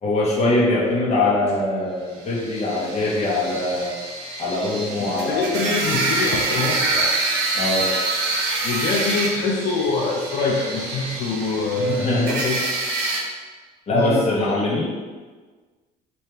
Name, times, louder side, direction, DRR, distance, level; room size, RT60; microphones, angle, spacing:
voice 1, 0.0-3.9 4.4-5.7 7.5-7.9 11.8-12.4 13.9-14.8, left 2 dB, 40° left, -6 dB, 1.1 m, -22 dB
sound 1, 2.3-13.2, right 2 dB, 75° right, 0.7 m, -26 dB
voice 2, 5.3-7.1 8.6-12.6 13.9-14.2, left 3 dB, 80° left, -3 dB, 0.5 m, -24 dB
3.4 x 2.7 x 3.3 m, 1.4 s
cardioid pair, 110°, 17 cm